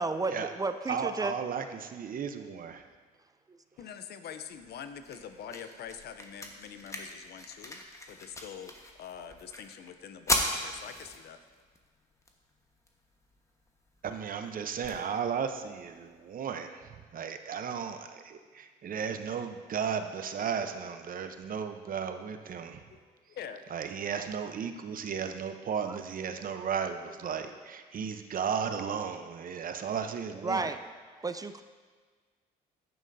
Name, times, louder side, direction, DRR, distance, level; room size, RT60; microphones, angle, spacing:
voice 1, 0.0-1.3 3.5-3.6 25.9-26.0 30.4-30.8 31.2-31.6, right 3 dB, 20° right, 10 dB, 0.4 m, -32 dB
voice 2, 0.9-2.8 14.0-22.8 23.7-30.8, right 7 dB, 50° right, 8 dB, 0.8 m, -35 dB
voice 3, 3.8-7.8 8.1-8.7 9.0-11.4 22.9-24.0, left 8 dB, 60° left, 10 dB, 0.6 m, -45 dB
sound 1, 4.5-16.5, left 1 dB, 15° left, 1.3 m, -39 dB
11.0 x 8.8 x 2.7 m, 1.5 s
supercardioid pair, 65°, 19 cm